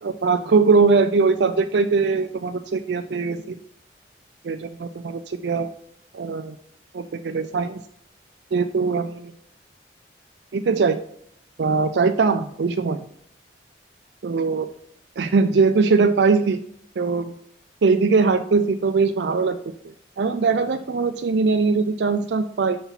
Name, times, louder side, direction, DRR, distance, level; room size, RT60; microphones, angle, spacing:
voice 1, 0.0-3.6 4.4-5.7 6.1-6.6 6.9-7.8 8.5-9.3 10.5-11.0 11.6-13.0 14.2-14.7 15.2-16.6 17.0-17.3 17.8-19.6 20.2-22.8, right 4 dB, 70° right, 7 dB, 0.4 m, -21 dB
6.8 x 4.3 x 5.7 m, 0.68 s
head